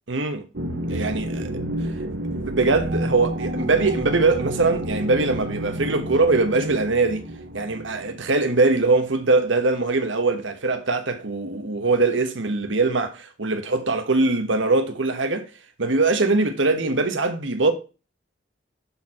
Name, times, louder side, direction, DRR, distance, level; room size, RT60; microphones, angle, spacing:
voice 1, 0.1-0.4 0.9-1.6 2.3-7.2 7.5-15.5 15.8-17.7, right 3 dB, 90° right, 1.3 m, -22 dB
sound 1, 0.5-9.1, right 1 dB, 65° right, 1.1 m, -30 dB
11.0 x 4.5 x 4.3 m
head